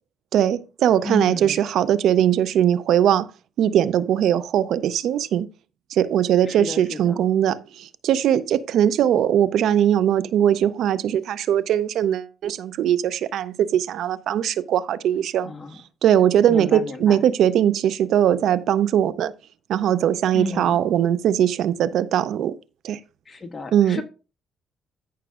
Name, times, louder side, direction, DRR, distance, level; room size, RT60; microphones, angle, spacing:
voice 1, 0.3-3.3 3.6-5.5 5.9-15.5 16.0-19.3 19.7-22.5 22.8-23.0 23.7-24.0, right 10 dB, 75° right, 0.4 m, -20 dB
voice 2, 1.0-1.6 6.4-7.2 15.4-15.8 16.5-17.2 20.3-20.8 23.2-24.0, left 2 dB, 30° left, 1.4 m, -32 dB
14.0 x 5.9 x 2.4 m
cardioid pair, 90°, 0 cm